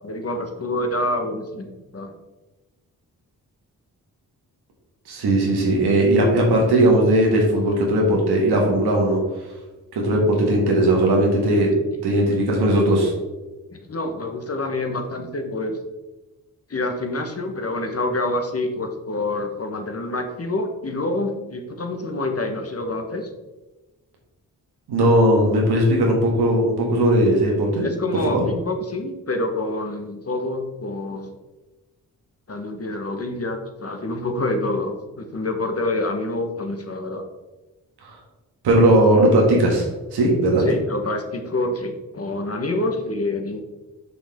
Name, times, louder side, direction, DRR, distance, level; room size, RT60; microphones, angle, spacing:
voice 1, 0.0-2.1 5.8-6.0 12.0-12.1 13.9-15.8 16.7-23.3 27.8-31.3 32.5-37.2 40.6-43.6, left 2 dB, 40° left, 5 dB, 1.2 m, -27 dB
voice 2, 5.1-9.2 9.9-11.7 12.0-13.1 24.9-27.9 28.3-28.4 38.0-38.2 38.6-39.9 40.1-40.6, right 1 dB, 90° right, -1 dB, 1.7 m, -18 dB
6.0 x 5.5 x 3.6 m, 1.1 s
supercardioid pair, 45°, 38 cm